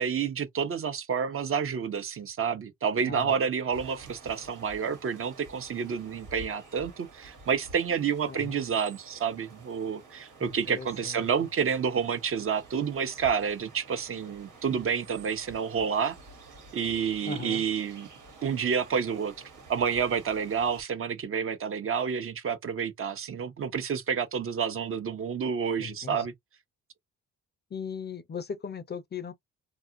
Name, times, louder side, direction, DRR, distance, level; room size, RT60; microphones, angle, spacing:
voice 1, 0.0-16.2 16.7-18.1 18.4-19.3 19.7-26.3, right 6 dB, 45° right, 0.7 m, -29 dB
sound 1, 3.7-20.8, right 3 dB, 80° right, 1.4 m, -50 dB
voice 2, 8.3-8.6 10.4-11.3 17.3-17.6 25.8-26.3 27.7-29.3, left 6 dB, 35° left, 0.5 m, -38 dB
2.9 x 2.3 x 2.4 m
cardioid pair, 90°, 30 cm